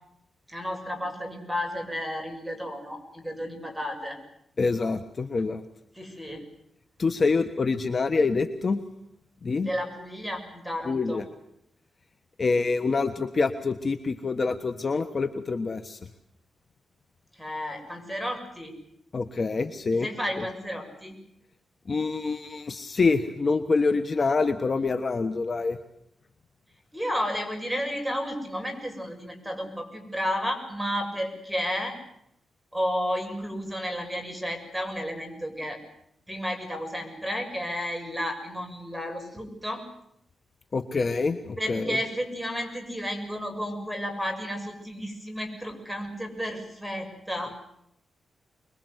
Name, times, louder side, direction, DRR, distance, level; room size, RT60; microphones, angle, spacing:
voice 1, 0.5-4.2 5.9-6.4 9.6-11.2 17.3-18.7 19.9-21.1 26.9-31.9 32.7-35.8 36.3-39.8 41.6-47.5, equal, ahead, 4 dB, 6.8 m, -32 dB
voice 2, 4.6-5.6 7.0-8.8 9.4-9.7 10.8-11.3 12.4-16.1 19.1-20.1 20.4-20.5 21.9-25.8 40.7-42.0, left 4 dB, 40° left, 9 dB, 1.3 m, -26 dB
26.0 x 21.5 x 8.1 m, 0.77 s
cardioid pair, 100°, 0 cm